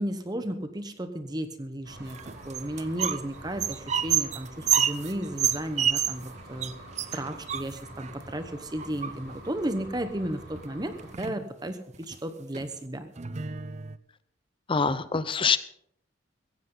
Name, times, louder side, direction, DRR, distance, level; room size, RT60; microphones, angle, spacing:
voice 1, 0.0-2.2 2.4-6.7 7.1-13.1, right 1 dB, 20° right, 9 dB, 1.0 m, -34 dB
sound 1, 1.8-11.1, right 1 dB, 60° right, 5.3 m, -46 dB
sound 2, 2.1-3.2 3.5-6.3 6.6-6.7 7.0-8.1 8.8-9.5 10.6-10.7 11.0-11.4 11.9-12.2 12.5-12.7 13.2-14.0, right 9 dB, 35° right, 0.6 m, -28 dB
voice 2, 14.7-15.6, left 5 dB, 25° left, 14 dB, 0.6 m, -24 dB
16.0 x 15.5 x 3.9 m, 0.70 s
head